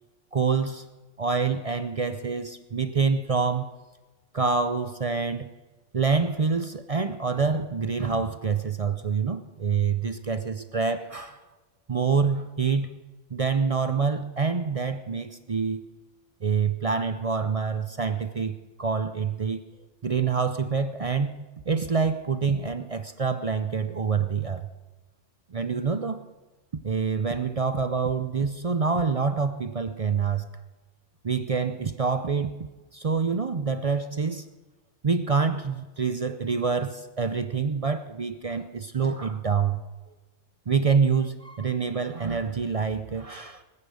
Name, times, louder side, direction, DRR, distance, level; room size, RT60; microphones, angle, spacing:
voice 1, 0.3-0.9 1.2-3.7 4.3-5.5 5.9-11.4 11.9-13.0 13.3-15.8 16.4-19.6 20.0-21.4 21.7-24.7 25.5-26.2 26.8-30.5 31.2-34.5 35.0-39.8 40.7-43.6, right 5 dB, 45° right, 11 dB, 0.5 m, -26 dB
19.5 x 9.9 x 6.3 m, 1.2 s
omnidirectional pair, 1.3 m